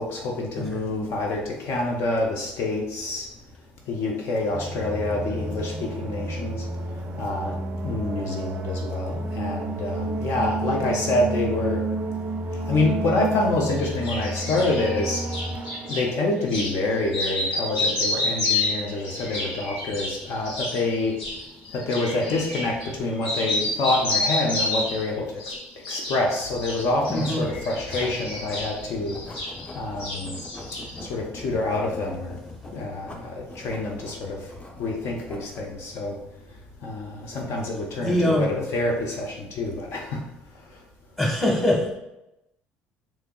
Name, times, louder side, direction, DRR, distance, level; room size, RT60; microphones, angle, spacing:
voice 1, 0.0-3.3 3.9-6.7 7.2-7.6 7.8-11.9 12.5-15.2 15.8-21.2 21.7-25.6 25.9-30.4 30.7-32.4 32.7-36.2 36.5-40.2 40.5-40.8, left 2 dB, 60° left, 0 dB, 0.6 m, -27 dB
sound 1, 4.5-16.5, right 2 dB, 35° right, 0.4 m, -31 dB
sound 2, 13.8-16.1 16.5-16.8 17.1-23.0 23.2-25.1 25.4-26.2 26.5-29.7 30.0-31.0, left 2 dB, 80° left, 0.9 m, -29 dB
Writing, 26.4-35.8, left 2 dB, 20° left, 0.7 m, -42 dB
voice 2, 27.1-27.4 38.0-38.6 41.2-42.0, left 1 dB, 5° left, -1 dB, 1.1 m, -23 dB
3.4 x 3.1 x 2.3 m, 0.87 s
hypercardioid pair, 60°, 5 cm